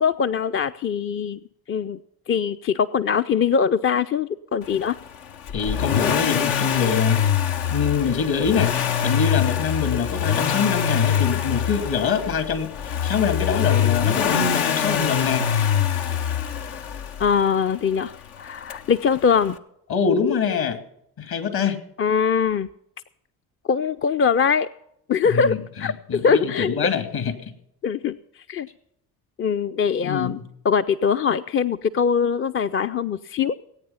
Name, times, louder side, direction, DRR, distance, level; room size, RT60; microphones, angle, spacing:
voice 1, 0.0-1.4 1.7-2.0 2.3-5.0 17.2-19.6 22.0-22.7 23.6-24.7 25.1-26.9 27.8-28.2 28.5-28.7 29.4-30.4 30.6-33.6, left 6 dB, 30° left, 11 dB, 0.5 m, -22 dB
Accelerating revving vroom, 5.5-17.4 18.7-18.8, left 8 dB, 70° left, 1.0 m, -23 dB
voice 2, 5.5-7.2 7.7-8.7 9.0-12.7 13.0-15.5 19.9-20.8 21.2-21.8 25.2-25.6 26.1-27.3 30.0-30.4, left 6 dB, 55° left, 8 dB, 2.7 m, -24 dB
18.5 x 8.9 x 5.7 m, 0.76 s
hypercardioid pair, 55°, 44 cm